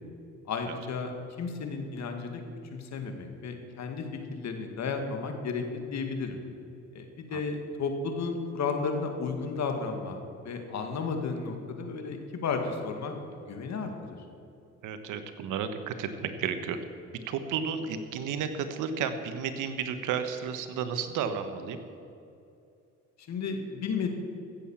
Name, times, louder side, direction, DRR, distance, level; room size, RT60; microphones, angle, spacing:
voice 1, 0.5-1.1 1.4-2.4 2.7-6.4 6.9-13.9 23.2-24.1, left 4 dB, 65° left, 5 dB, 2.0 m, -33 dB
voice 2, 14.8-16.8 17.3-21.8, right 7 dB, 90° right, 9 dB, 1.2 m, -32 dB
15.5 x 7.8 x 7.3 m, 2.6 s
cardioid pair, 90°, 30 cm